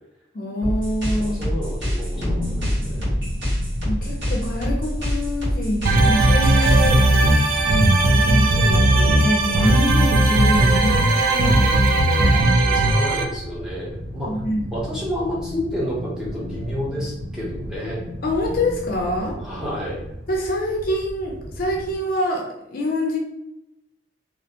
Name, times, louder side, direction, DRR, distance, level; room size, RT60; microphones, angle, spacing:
voice 1, 0.3-1.5 3.9-7.0 7.6-13.0 14.3-14.7 18.2-19.4 20.3-23.2, left 1 dB, 50° left, 0 dB, 0.4 m, -26 dB
sound 1, 0.6-7.0, equal, 60° right, 1.3 m, -26 dB
voice 2, 1.1-2.4 2.8-3.1 9.5-9.7 12.7-14.4 14.7-18.0 19.4-20.0, equal, 5° right, -7 dB, 0.7 m, -30 dB
sound 2, 2.1-22.0, equal, 75° right, 0.8 m, -35 dB
sound 3, 5.9-13.2, right 1 dB, 45° right, 0.3 m, -17 dB
2.4 x 2.1 x 2.8 m, 0.85 s
head